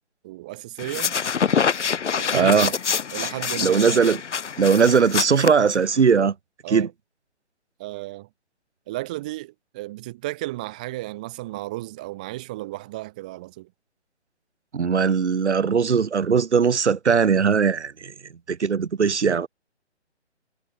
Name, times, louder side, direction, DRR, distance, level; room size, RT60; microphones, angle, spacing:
voice 1, 0.2-1.2 2.1-2.8 3.1-4.1 6.6-6.9 7.8-8.3 8.9-13.7, right 18 dB, 5° right, 0.9 m, -34 dB
sound 1, 0.8-6.1, left 6 dB, 80° left, 1.1 m, -26 dB
voice 2, 2.3-2.7 3.6-4.2 4.6-6.3 6.7-6.9 14.7-18.1 18.5-19.5, right 6 dB, 75° right, 1.7 m, -19 dB
hypercardioid pair, 170°, 35 cm